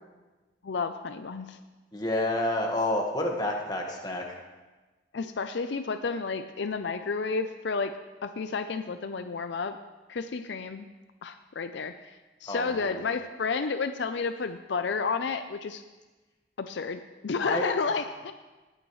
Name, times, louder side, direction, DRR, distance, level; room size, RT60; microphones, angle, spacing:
voice 1, 0.6-1.6 5.1-7.9 8.2-9.8 10.1-10.9 11.2-11.9 12.4-15.8 16.6-18.3, left 4 dB, 70° left, 9 dB, 0.5 m, -31 dB
voice 2, 1.9-4.3 12.5-13.0 17.4-17.7, left 1 dB, 20° left, 0 dB, 1.5 m, -29 dB
20.0 x 9.1 x 3.2 m, 1.2 s
head